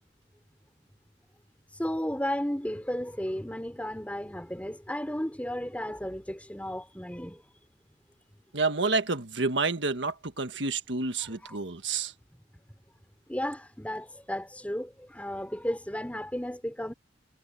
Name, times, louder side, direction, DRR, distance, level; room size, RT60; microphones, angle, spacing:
voice 1, 1.8-7.4 11.2-11.6 13.3-16.9, equal, 5° left, 3.8 m, -34 dB
voice 2, 8.5-12.1, right 3 dB, 65° right, 1.6 m, -29 dB
head